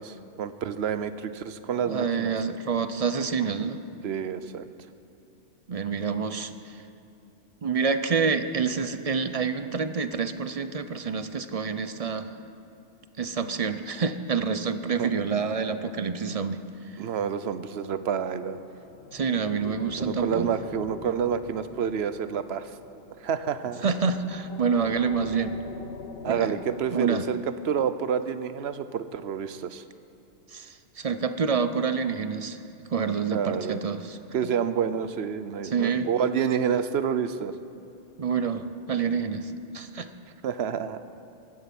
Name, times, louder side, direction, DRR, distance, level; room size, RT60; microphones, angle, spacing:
voice 1, 0.0-2.3 4.0-4.7 15.0-15.1 17.0-18.6 20.0-22.7 23.2-23.8 26.2-29.8 33.3-33.8 34.3-37.6 40.4-41.0, right 7 dB, 65° right, 12 dB, 0.9 m, -28 dB
voice 2, 1.9-3.8 5.7-6.7 7.6-12.3 13.2-16.6 19.1-20.5 23.8-25.6 26.3-26.5 26.9-27.2 30.5-34.2 35.6-36.1 38.2-40.1, right 5 dB, 45° right, 11 dB, 0.5 m, -27 dB
sound 1, 18.3-27.1, left 5 dB, 60° left, 1.1 m, -43 dB
16.0 x 11.5 x 6.0 m, 2.8 s
omnidirectional pair, 1.2 m